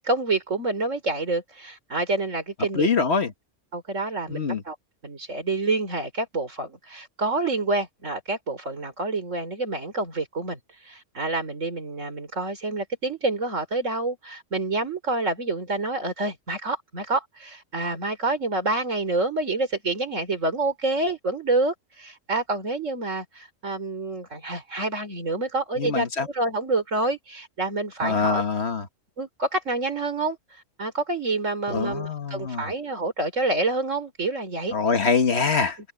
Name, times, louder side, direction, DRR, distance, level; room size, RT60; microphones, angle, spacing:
voice 1, 0.0-2.9 3.7-4.7 5.0-10.6 10.8-28.4 29.2-30.4 30.8-34.8, right 2 dB, 80° right, 4.5 m, -27 dB
voice 2, 2.7-3.3 4.3-4.6 25.8-26.3 28.0-28.9 31.7-32.7 34.7-35.8, left 5 dB, 60° left, 1.8 m, -24 dB
omnidirectional pair, 1.3 m